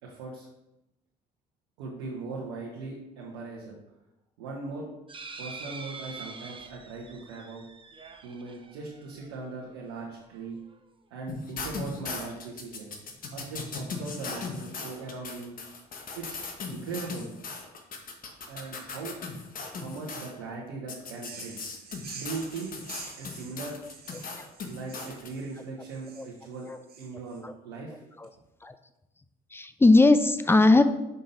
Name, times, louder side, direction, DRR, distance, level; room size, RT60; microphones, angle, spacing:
voice 1, 0.0-0.5 1.8-3.7 4.4-4.9 5.4-7.6 8.2-10.6 11.1-12.9 13.3-15.6 16.1-17.3 18.5-19.2 19.7-21.6 22.1-22.8 23.2-23.8 24.7-26.7 27.0-28.0, right 4 dB, 80° right, -3 dB, 1.1 m, -39 dB
sound 1, 5.1-9.7 10.3-10.4 10.7-10.8, right 4 dB, 25° right, 0.8 m, -45 dB
sound 2, 11.3-20.3 20.9-25.3, left 4 dB, 45° left, 1.2 m, -38 dB
sound 3, 21.1-27.4, right 5 dB, 55° right, 1.6 m, -47 dB
voice 2, 29.5-30.8, left 2 dB, 10° left, 10 dB, 0.6 m, -19 dB
5.6 x 5.2 x 4.0 m, 0.91 s
hypercardioid pair, 55°, 19 cm